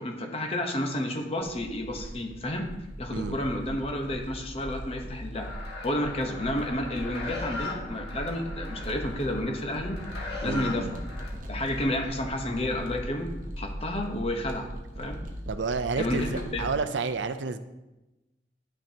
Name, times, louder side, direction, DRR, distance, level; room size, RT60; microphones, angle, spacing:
voice 1, 0.0-2.7 3.0-5.5 5.8-10.0 10.4-11.0 11.5-13.3 13.6-14.7 15.0-15.2 16.0-16.6, left 1 dB, 35° left, 3 dB, 1.0 m, -31 dB
sound 1, 1.4-16.8, equal, 50° right, 1.1 m, -39 dB
sound 2, 5.3-11.3, left 3 dB, 65° left, 1.8 m, -40 dB
voice 2, 10.4-10.9 15.5-17.6, right 4 dB, 85° right, 10 dB, 0.5 m, -30 dB
10.5 x 6.0 x 2.9 m, 1.0 s
head